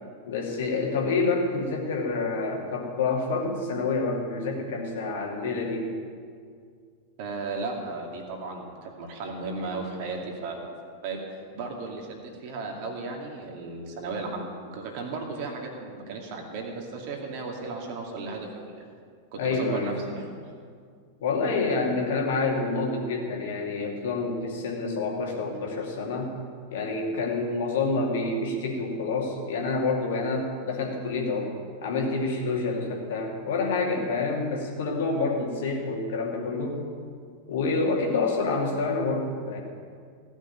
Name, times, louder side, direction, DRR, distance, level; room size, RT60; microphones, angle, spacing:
voice 1, 0.3-5.9 9.6-9.7 19.4-20.0 21.2-26.3 26.7-31.5 31.8-36.8 37.5-39.6, left 3 dB, 55° left, 0 dB, 2.5 m, -28 dB
voice 2, 7.2-10.7 11.0-18.8 19.3-20.3, right 3 dB, 45° right, 1 dB, 2.4 m, -35 dB
15.5 x 6.3 x 9.4 m, 2.1 s
figure-of-eight pair, 90°, 0 cm